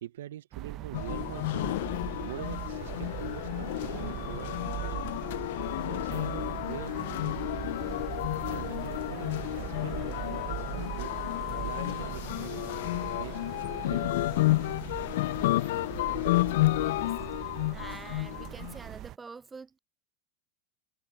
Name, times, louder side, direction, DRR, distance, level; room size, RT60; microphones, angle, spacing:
voice 1, 0.0-5.2 5.8-7.8 8.5-11.1 11.6-13.4 13.7-14.2 16.1-16.4 16.8-16.9 17.3-17.4, right 12 dB, 75° right, 0.8 m, -44 dB
sound 1, 0.5-19.2, right 15 dB, 45° right, 0.9 m, -40 dB
sound 2, 0.9-18.8, left 18 dB, 70° left, 0.4 m, -31 dB
voice 2, 16.8-17.1 17.7-19.8, right 4 dB, 20° right, 0.4 m, -46 dB
sound 3, 17.7-18.0, left 19 dB, 50° left, 4.5 m, -62 dB
hypercardioid pair, 90°, 0 cm